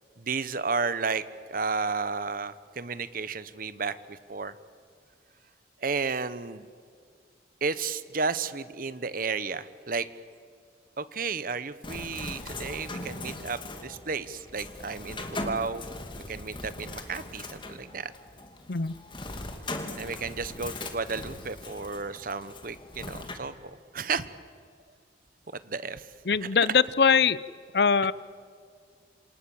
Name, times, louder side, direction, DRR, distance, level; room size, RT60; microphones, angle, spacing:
voice 1, 0.2-4.5 5.8-6.7 7.6-10.1 11.0-15.9 16.3-18.1 20.0-24.3 25.5-26.1 26.4-26.5, right 4 dB, 55° right, 14 dB, 1.1 m, -33 dB
Bird, 11.8-23.3, left 2 dB, 30° left, 2.6 m, -40 dB
voice 2, 26.3-27.4 27.7-28.1, left 6 dB, 65° left, 18 dB, 0.7 m, -22 dB
28.0 x 27.5 x 7.3 m, 2.2 s
head